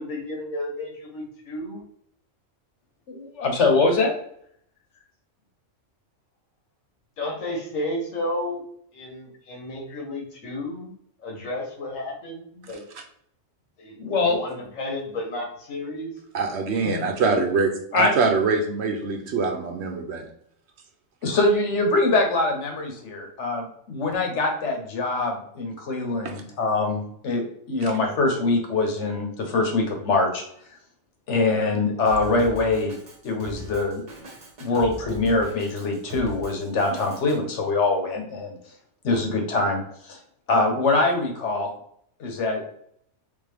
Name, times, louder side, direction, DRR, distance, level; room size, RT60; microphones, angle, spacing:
voice 1, 0.0-1.8 7.2-8.6 8.9-10.9 11.2-12.8 13.8-16.1, left 1 dB, 85° left, 0 dB, 1.6 m, -32 dB
voice 2, 3.1-4.2 14.0-14.4 16.8-17.1 17.3-17.4 17.9-18.1 21.2-30.4 31.3-32.9 33.2-34.0 34.6-38.6 39.0-39.8 40.1-40.2 40.5-41.7 42.2-42.6, left 3 dB, 65° left, 3 dB, 1.2 m, -23 dB
voice 3, 16.3-20.2 26.2-26.3 27.8-27.9, right 4 dB, 65° right, 3 dB, 0.9 m, -24 dB
Drum kit, 32.1-37.4, right 1 dB, 40° right, 1.0 m, -40 dB
3.7 x 3.5 x 3.4 m, 0.67 s
omnidirectional pair, 1.3 m